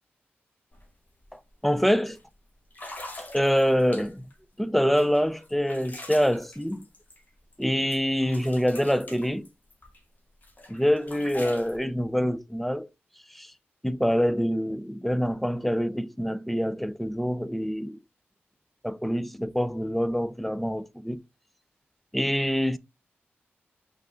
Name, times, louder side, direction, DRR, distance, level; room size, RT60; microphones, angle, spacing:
sound 1, 0.7-0.8 1.2-1.5 2.1-2.2 2.7-4.4 4.9-7.6 7.9-10.0 10.4-11.8, left 1 dB, 40° left, 1.4 m, -44 dB
voice 1, 1.3-2.2 3.3-4.3 4.6-6.9 7.6-9.5 10.7-12.9 13.3-13.5 13.8-18.0 18.8-21.2 22.1-22.8, equal, 5° left, 0.4 m, -25 dB
5.3 x 3.8 x 2.2 m
cardioid pair, 70°, 4 cm